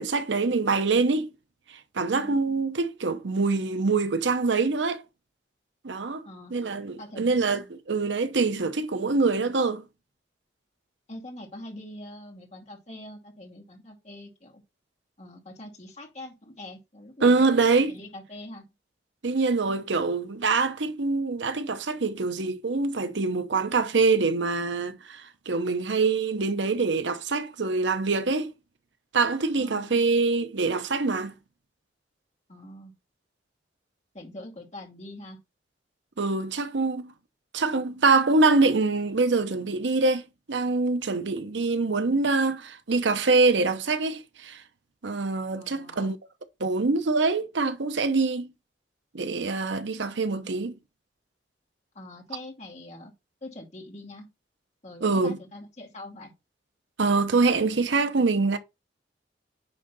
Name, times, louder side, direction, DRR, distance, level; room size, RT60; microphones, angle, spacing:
voice 1, 0.0-1.3 1.9-5.0 5.8-6.2 6.5-9.8 17.2-17.9 19.2-28.5 29.1-31.3 36.2-37.1 37.5-44.6 45.0-46.2 46.6-48.5 49.1-50.8 55.0-55.4 57.0-58.6, right 3 dB, 85° right, 0.8 m, -24 dB
voice 2, 2.1-2.6 6.2-6.5 7.0-7.3 11.1-14.6 15.2-18.6 29.5-30.0 32.5-32.9 34.1-35.4 45.6-46.1 51.9-53.1 53.4-54.3 54.8-56.3, left 1 dB, 40° left, 2.5 m, -43 dB
10.0 x 3.7 x 4.1 m
head